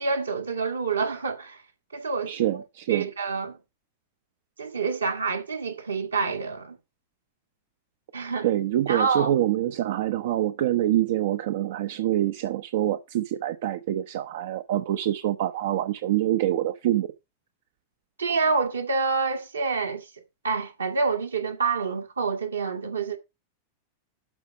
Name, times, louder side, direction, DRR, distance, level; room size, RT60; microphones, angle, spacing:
voice 1, 0.0-1.6 1.9-2.4 2.9-3.6 4.6-6.8 8.1-8.5 8.9-9.4 18.2-20.1 20.4-23.2, right 4 dB, 75° right, 1.9 m, -27 dB
voice 2, 2.3-3.1 8.4-17.1, right 13 dB, 55° right, 0.7 m, -25 dB
12.0 x 5.0 x 5.1 m
figure-of-eight pair, 90°, 0 cm